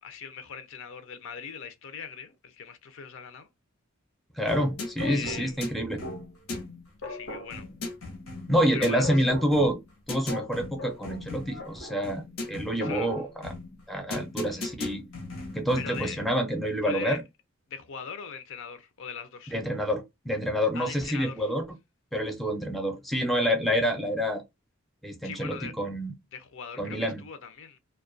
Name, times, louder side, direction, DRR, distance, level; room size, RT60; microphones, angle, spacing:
voice 1, 0.0-3.5 5.0-5.7 7.0-7.7 8.7-9.3 12.8-13.1 14.3-14.6 15.8-16.2 16.8-17.2 17.7-19.5 20.7-21.5 25.2-25.7 26.3-27.8, left 7 dB, 65° left, 0.5 m, -40 dB
voice 2, 4.4-6.0 8.5-9.8 10.1-12.2 12.5-13.5 13.9-15.0 15.5-17.2 19.5-21.6 22.1-24.4 25.0-26.1 26.8-27.2, equal, ahead, 0.4 m, -27 dB
sound 1, 4.5-16.3, left 2 dB, 85° left, 0.9 m, -37 dB
2.2 x 2.2 x 2.5 m
head